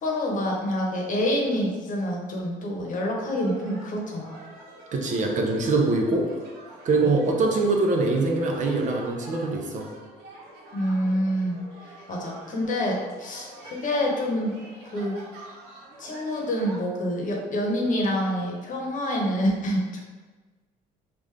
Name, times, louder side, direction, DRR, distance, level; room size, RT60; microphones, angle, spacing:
voice 1, 0.0-4.4 7.0-7.1 10.7-11.6 12.1-14.5 14.9-15.1 16.0-20.0, equal, 50° left, -1 dB, 0.9 m, -27 dB
sound 1, 3.4-16.8, right 2 dB, 80° right, 1.0 m, -46 dB
voice 2, 4.9-6.3 6.8-9.9, right 3 dB, 45° right, 1 dB, 0.6 m, -23 dB
3.6 x 2.5 x 3.2 m, 1.3 s
cardioid pair, 110°, 17 cm